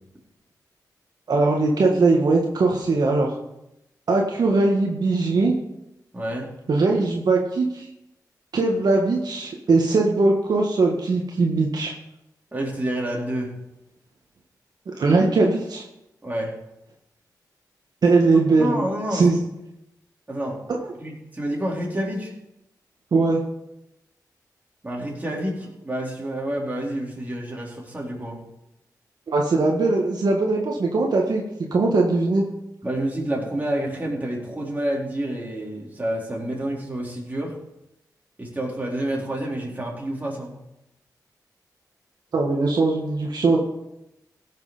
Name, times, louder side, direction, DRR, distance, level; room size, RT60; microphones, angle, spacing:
voice 1, 1.3-3.4 4.1-5.5 6.7-7.9 8.5-11.9 15.0-15.8 18.0-18.8 19.1-19.4 20.7-20.9 23.1-23.4 29.3-31.4 31.7-32.4 42.3-43.6, right 3 dB, 70° right, 0 dB, 1.6 m, -20 dB
voice 2, 6.1-6.5 12.5-13.5 16.2-16.6 18.6-19.3 20.3-20.6 21.0-22.3 24.8-28.4 32.8-37.6 38.4-40.5, right 1 dB, 25° right, -3 dB, 4.1 m, -28 dB
16.5 x 6.7 x 5.0 m, 0.87 s
cardioid pair, 65°, 7 cm